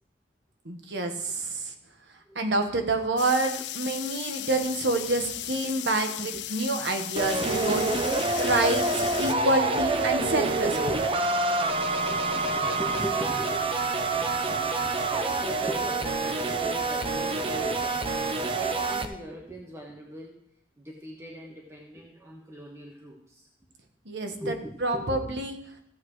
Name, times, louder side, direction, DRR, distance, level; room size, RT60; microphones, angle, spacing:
voice 1, 0.6-1.7 2.3-10.9 24.0-24.5 24.8-25.6, right 2 dB, 85° right, 5 dB, 1.4 m, -28 dB
sound 1, 3.2-9.3, left 14 dB, 80° left, 0.4 m, -36 dB
sound 2, 7.2-19.1, right 3 dB, 30° right, 0.7 m, -27 dB
voice 2, 12.0-13.7 14.0-18.1 18.5-20.4 20.8-23.5 24.4-25.2, right 1 dB, 15° right, -1 dB, 1.3 m, -40 dB
14.5 x 8.5 x 3.1 m, 0.70 s
head